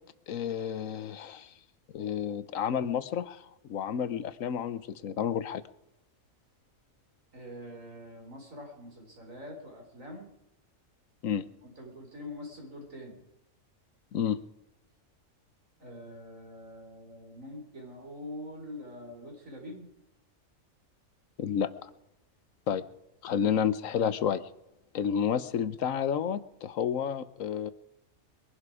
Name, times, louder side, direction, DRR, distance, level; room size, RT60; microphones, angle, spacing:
voice 1, 0.3-1.5 1.9-5.6 11.2-11.4 14.1-14.4 21.4-21.9 22.7-22.8 23.2-24.4 24.9-27.7, left 8 dB, 80° left, 14 dB, 1.2 m, -30 dB
voice 2, 7.3-10.3 11.6-13.2 15.8-19.9 23.3-23.5, left 1 dB, 75° right, 1 dB, 4.5 m, -44 dB
22.5 x 11.5 x 4.9 m, 0.87 s
omnidirectional pair, 1.4 m